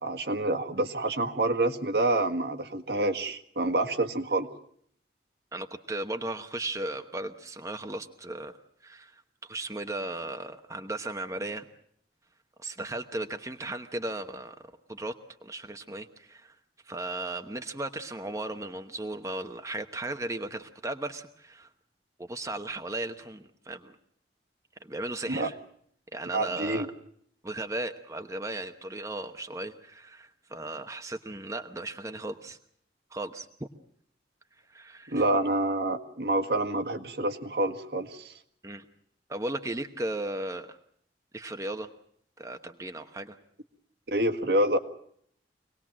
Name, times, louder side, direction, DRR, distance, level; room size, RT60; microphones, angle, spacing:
voice 1, 0.0-4.5 25.3-25.5 26.3-26.9 35.1-38.3 44.1-44.8, right 1 dB, 65° right, 6 dB, 1.7 m, -27 dB
voice 2, 5.5-8.6 8.8-11.7 12.6-14.6 14.9-15.2 15.4-16.6 16.8-21.7 22.2-24.0 24.8-25.6 26.1-26.9 27.4-32.6 33.1-33.7 34.7-35.2 38.6-38.9 39.3-40.8 41.3-41.9 42.4-43.4, right 2 dB, 20° right, 5 dB, 1.1 m, -36 dB
25.5 x 19.0 x 7.4 m, 0.66 s
head